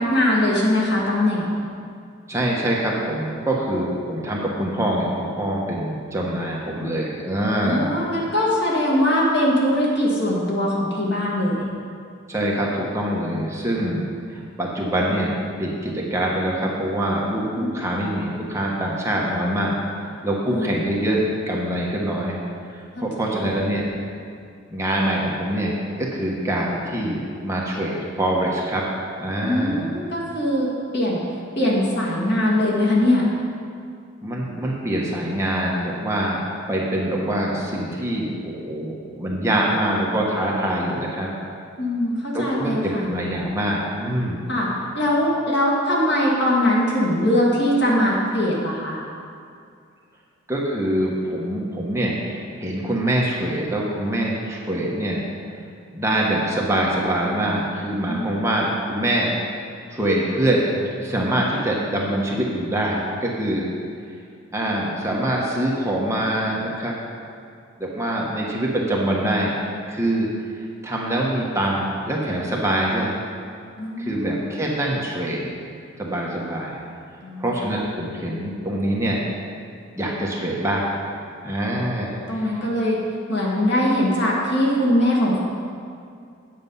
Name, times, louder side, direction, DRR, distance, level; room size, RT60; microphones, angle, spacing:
voice 1, 0.0-1.5 7.6-11.6 13.8-14.0 17.5-17.8 20.5-20.9 23.2-23.5 29.4-31.2 31.6-33.2 41.8-43.0 44.5-49.0 58.1-58.2 73.8-74.6 77.2-77.5 81.7-83.0 83.3-85.4, left 1 dB, 55° left, -4 dB, 2.1 m, -21 dB
voice 2, 2.3-8.3 12.3-19.8 20.2-21.2 21.5-22.4 23.0-23.9 24.7-28.8 29.2-29.9 34.2-36.4 36.7-41.3 42.3-44.4 50.5-55.2 55.9-59.4 59.9-63.7 64.5-66.9 67.8-69.6 69.9-70.3 70.8-73.2 74.0-75.4 76.0-76.8 77.4-79.2 80.0-80.9 81.4-82.6, right 1 dB, 15° right, -3 dB, 1.1 m, -24 dB
8.7 x 7.6 x 5.5 m, 2.3 s
head